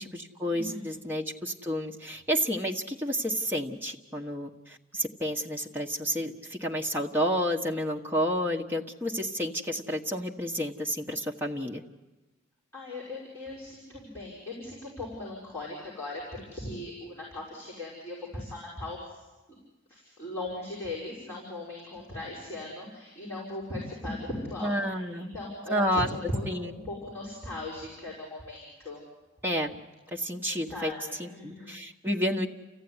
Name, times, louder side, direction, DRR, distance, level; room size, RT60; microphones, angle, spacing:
voice 1, 0.0-11.8 24.6-25.3 25.7-26.1 26.5-26.7 29.4-29.7 30.1-30.9 31.2-32.5, equal, 10° right, 0 dB, 1.3 m, -30 dB
voice 2, 12.7-19.2 19.9-29.0 30.7-31.8, left 2 dB, 10° left, -7 dB, 5.5 m, -38 dB
29.5 x 15.0 x 9.8 m, 1.2 s
head